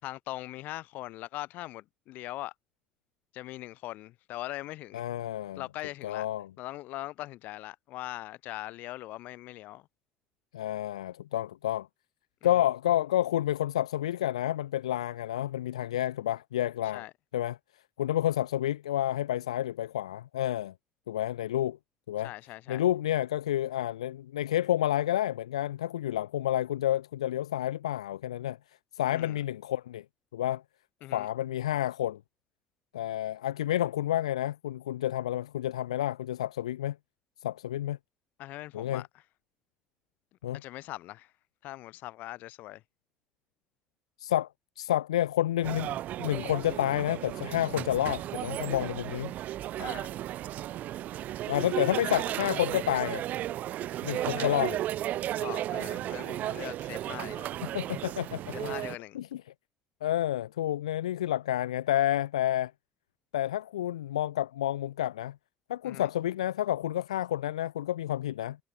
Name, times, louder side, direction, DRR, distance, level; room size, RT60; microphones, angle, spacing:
voice 1, 0.0-2.5 3.3-5.1 5.6-6.3 6.6-9.9 12.4-12.5 16.9-17.1 22.2-22.8 29.1-29.4 31.0-31.3 38.4-39.1 40.5-41.3 41.6-42.8 49.8-50.2 54.2-54.5 55.4-57.5 58.5-59.2 65.8-66.1, left 17 dB, 60° left, 5.3 m, -41 dB
voice 2, 4.9-5.6 6.0-6.5 10.5-11.9 12.4-17.0 17.3-17.6 18.0-20.7 21.1-21.8 22.1-22.3 22.7-28.6 28.9-30.0 30.3-30.6 31.1-32.2 32.9-37.0 37.4-38.0 38.7-39.0 40.4-40.6 44.2-44.5 44.8-49.3 51.5-53.2 54.0-54.8 57.7-58.7 59.1-59.4 60.0-62.7 63.3-65.4 65.7-68.6, left 12 dB, 75° left, 2.4 m, -29 dB
sound 1, 45.6-59.0, right 13 dB, 55° right, 7.7 m, -34 dB
figure-of-eight pair, 50°, 3 cm